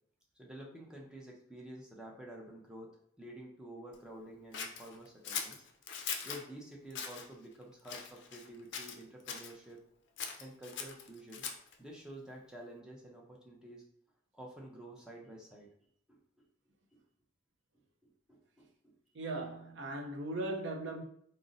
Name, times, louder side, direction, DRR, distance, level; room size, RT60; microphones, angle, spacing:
voice 1, 0.4-5.6 6.2-9.8 10.4-11.5 11.8-13.8 14.3-15.7 16.1-16.4 16.9-17.0 18.0-19.0, right 1 dB, 5° right, 0.5 m, -50 dB
Scissors, 4.5-6.4 6.9-7.2 7.8-8.5 8.7-9.5 10.2-11.7, left 6 dB, 60° left, 0.4 m, -41 dB
voice 2, 19.1-21.0, right 2 dB, 65° right, 0.5 m, -38 dB
2.5 x 2.0 x 3.8 m
head